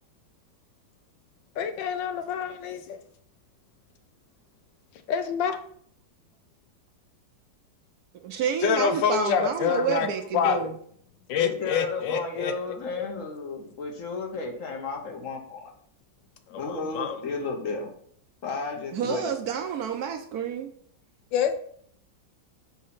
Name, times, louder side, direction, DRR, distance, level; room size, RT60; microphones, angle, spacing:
voice 1, 1.6-3.0 5.1-5.6 8.6-10.1 10.3-10.7 11.3-13.1 16.5-17.2 21.3-21.5, left 8 dB, 85° left, 9 dB, 1.4 m, -27 dB
voice 2, 8.2-10.7 18.9-20.7, right 7 dB, 70° right, 6 dB, 1.0 m, -29 dB
voice 3, 11.4-15.7 16.5-17.9 18.4-19.3, left 3 dB, 55° left, 3 dB, 1.1 m, -33 dB
4.8 x 4.2 x 5.6 m, 0.64 s
omnidirectional pair, 1.9 m